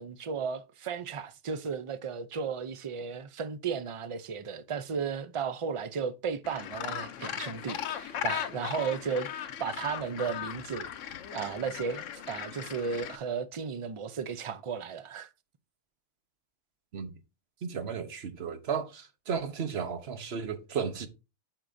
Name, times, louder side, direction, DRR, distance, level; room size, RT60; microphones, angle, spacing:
voice 1, 0.0-15.3, right 6 dB, 40° right, 0.4 m, -35 dB
Gull seagull, 6.4-13.2, left 10 dB, 90° left, 1.0 m, -38 dB
voice 2, 17.6-21.1, right 6 dB, 60° right, 1.1 m, -34 dB
8.1 x 6.0 x 2.6 m
omnidirectional pair, 1.3 m